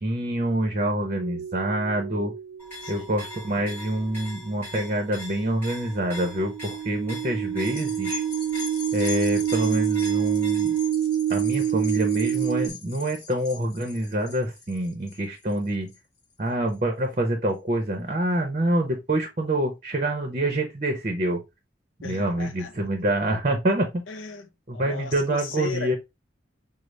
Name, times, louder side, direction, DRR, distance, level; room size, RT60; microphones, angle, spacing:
voice 1, 0.0-2.3 2.9-8.2 8.9-10.7 11.3-15.9 16.4-21.4 22.0-24.0 24.7-26.0, right 1 dB, 35° right, 0.6 m, -26 dB
sound 1, 1.1-3.8 6.0-12.7, right 10 dB, 90° right, 0.4 m, -27 dB
sound 2, 2.6-10.9, left 1 dB, 10° left, 2.1 m, -42 dB
sound 3, 7.6-16.2 16.7-16.8, left 6 dB, 55° left, 1.2 m, -40 dB
voice 2, 22.0-22.7 24.1-26.0, left 6 dB, 80° left, 0.5 m, -36 dB
5.1 x 2.0 x 3.1 m
head